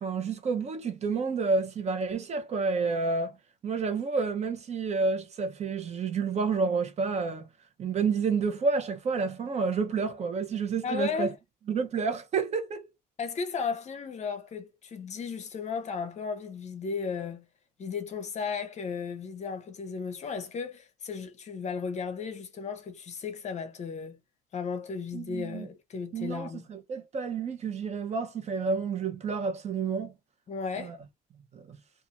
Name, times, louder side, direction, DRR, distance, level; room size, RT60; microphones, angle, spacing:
voice 1, 0.0-3.4 3.6-7.5 7.8-11.3 11.7-12.9 25.1-25.7 26.1-30.1 30.8-31.0 31.5-31.8, right 4 dB, 40° right, 0.8 m, -29 dB
voice 2, 10.8-11.4 13.2-17.5 17.8-24.2 24.5-26.7 30.5-31.0, left 5 dB, 40° left, 0.7 m, -35 dB
2.5 x 2.4 x 2.8 m
cardioid pair, 110°, 17 cm